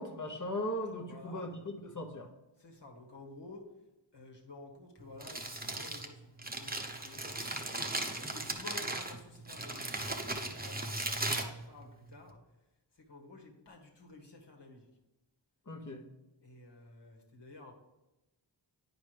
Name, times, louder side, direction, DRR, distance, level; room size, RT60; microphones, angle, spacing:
voice 1, 0.0-2.3 15.7-16.0, left 1 dB, 40° left, 3 dB, 1.1 m, -38 dB
voice 2, 1.0-1.5 2.6-3.7 4.1-7.2 7.7-12.4 12.9-14.9 16.4-17.7, left 2 dB, 60° left, 0 dB, 1.6 m, -52 dB
Crumpling crinkling, 5.0-12.3, right 2 dB, 20° right, 0.8 m, -38 dB
9.5 x 5.0 x 3.4 m, 1.0 s
wide cardioid pair, 45°, 47 cm